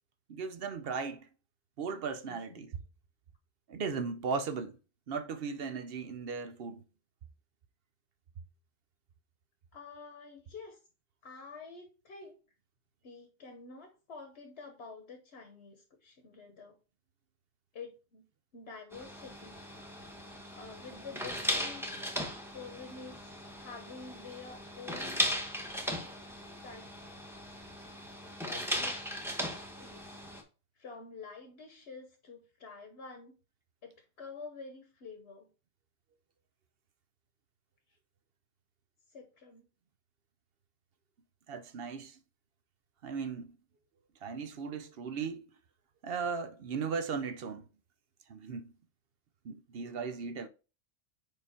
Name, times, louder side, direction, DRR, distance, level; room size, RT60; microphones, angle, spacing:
voice 1, 0.3-1.3 1.8-2.7 3.7-4.8 5.1-6.8 41.5-42.2 43.0-43.6 44.2-45.5 46.0-47.7 48.3-48.7 49.4-50.5, right 5 dB, 60° right, 0.8 m, -37 dB
voice 2, 2.2-2.7 9.7-10.8 11.2-12.3 13.0-16.8 17.7-18.2 18.5-19.6 20.5-22.0 22.5-25.3 26.6-27.1 28.5-29.1 29.8-30.2 30.7-33.3 33.8-35.5 39.1-39.7, left 4 dB, 70° left, 1.3 m, -48 dB
sound 1, 18.9-30.4, equal, ahead, 1.0 m, -38 dB
4.9 x 4.8 x 4.3 m
omnidirectional pair, 1.2 m